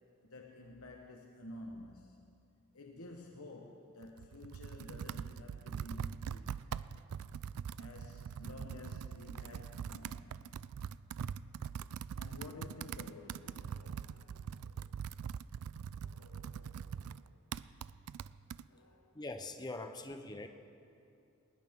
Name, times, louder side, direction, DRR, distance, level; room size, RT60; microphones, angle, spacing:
voice 1, 0.2-2.2 2.7-6.7 7.8-10.4 12.2-14.8 16.0-17.3 18.7-19.1 19.9-20.0, left 2 dB, 75° left, 1 dB, 1.2 m, -52 dB
Computer keyboard, 4.0-18.6, right 7 dB, 80° right, 0.3 m, -43 dB
voice 2, 19.2-20.5, left 2 dB, 20° left, 6 dB, 0.8 m, -43 dB
20.0 x 19.5 x 3.7 m, 2.6 s
head